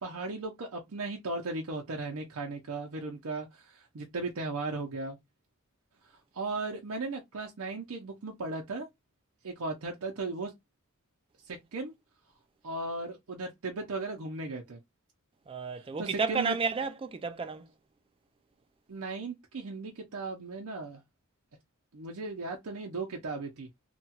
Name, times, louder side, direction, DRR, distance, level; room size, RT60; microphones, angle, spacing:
voice 1, 0.0-5.2 6.1-8.9 9.4-10.5 11.4-11.9 12.6-14.8 16.0-16.6 18.9-21.0 21.9-23.7, right 3 dB, 80° right, 0.6 m, -36 dB
voice 2, 15.5-17.7, right 4 dB, 25° right, 0.3 m, -32 dB
2.8 x 2.3 x 2.8 m
head